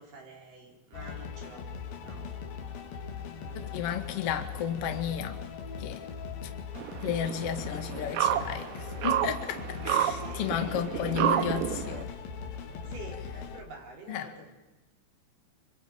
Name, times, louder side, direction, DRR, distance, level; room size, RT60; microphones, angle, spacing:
voice 1, 0.0-1.7 2.0-2.3 3.4-3.7 9.8-10.5 11.1-11.6 12.8-14.5, right 3 dB, 45° right, 5.6 m, -47 dB
sound 1, 0.9-13.6, left 6 dB, 55° left, 3.3 m, -40 dB
voice 2, 3.6-5.4 5.8-6.0 6.4-6.5 7.0-12.2 14.1-14.3, left 9 dB, 70° left, 1.4 m, -33 dB
sound 2, 6.8-12.0, right 11 dB, 85° right, 3.8 m, -30 dB
26.5 x 26.0 x 5.2 m
omnidirectional pair, 5.9 m